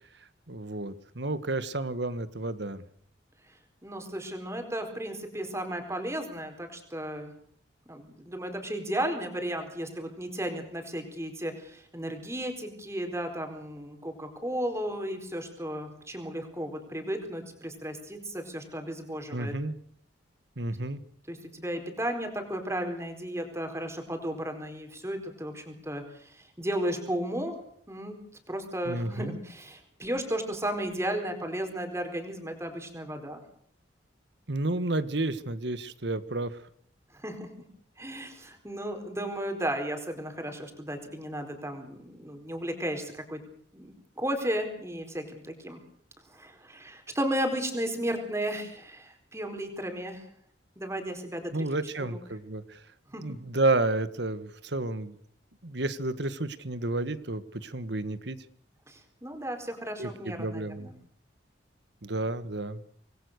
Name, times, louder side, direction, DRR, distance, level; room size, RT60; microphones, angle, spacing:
voice 1, 0.5-2.8 19.3-19.7 20.6-21.0 28.8-29.4 34.5-36.6 51.5-52.8 53.2-55.2 55.6-58.4 60.0-61.0 62.0-62.8, right 2 dB, 65° right, 14 dB, 1.6 m, -31 dB
voice 2, 3.8-7.3 7.9-19.5 21.3-27.5 27.9-28.2 28.5-33.4 37.2-37.5 38.0-43.4 43.7-45.8 46.3-50.2 50.8-51.7 52.1-52.2 53.1-53.4 58.9-60.9, right 1 dB, 15° right, 5 dB, 4.4 m, -34 dB
26.5 x 20.5 x 6.7 m, 0.63 s
head